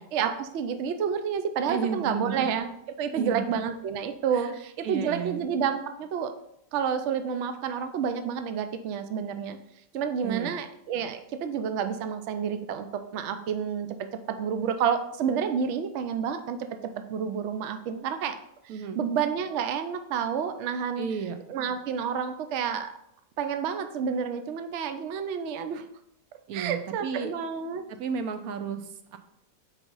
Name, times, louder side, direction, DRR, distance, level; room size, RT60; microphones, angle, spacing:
voice 1, 0.1-2.7 3.0-6.3 6.7-9.6 9.9-13.9 14.3-16.6 17.1-18.3 18.6-21.1 21.5-22.9 23.4-25.8 26.5-27.8, right 7 dB, 85° right, 8 dB, 0.6 m, -29 dB
voice 2, 1.7-2.4 3.1-3.6 4.3-4.6 4.8-5.5 10.2-10.5 18.7-19.0 21.0-21.4 26.5-27.3 27.9-29.2, right 6 dB, 70° right, 8 dB, 0.9 m, -33 dB
4.6 x 4.1 x 5.3 m, 0.75 s
omnidirectional pair, 1.9 m